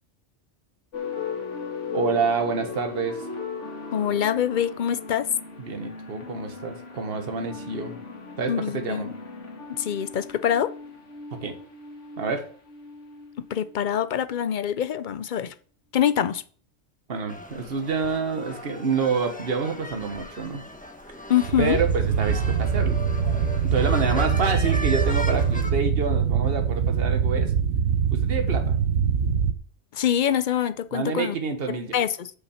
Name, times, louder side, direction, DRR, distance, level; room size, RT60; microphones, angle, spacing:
sound 1, 0.9-14.3, left 5 dB, 80° left, 2.2 m, -38 dB
voice 1, 1.9-3.2 5.6-8.0 8.4-9.1 11.4-11.5 12.2-12.4 17.1-20.6 21.6-23.1 23.6-27.5 28.1-28.8 30.9-31.9, right 4 dB, 55° right, 1.5 m, -27 dB
voice 2, 3.9-5.3 8.5-9.1 9.7-10.7 13.4-15.5 15.9-16.4 21.3-21.8 29.9-31.4 31.9-32.3, left 9 dB, 50° left, 0.6 m, -25 dB
sound 2, 17.3-25.7, left 1 dB, 5° left, 1.4 m, -37 dB
sound 3, 21.4-29.5, right 7 dB, 85° right, 1.1 m, -23 dB
8.2 x 5.7 x 7.1 m
omnidirectional pair, 1.2 m